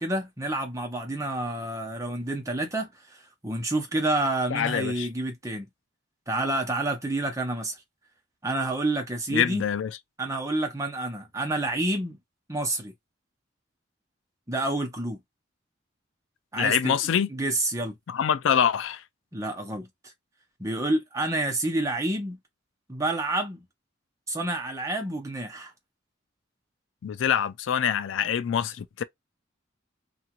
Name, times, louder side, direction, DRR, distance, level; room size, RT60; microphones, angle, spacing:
voice 1, 0.0-5.7 6.3-7.7 8.4-9.6 10.2-12.2 12.5-12.9 14.5-15.2 16.5-18.0 19.3-19.9 20.6-22.4 22.9-23.6 24.3-25.7, right 2 dB, 15° right, 0.7 m, -29 dB
voice 2, 4.5-5.1 9.3-10.0 16.6-17.3 18.1-19.0 27.0-29.0, left 8 dB, 75° left, 0.4 m, -25 dB
2.8 x 2.4 x 2.9 m
head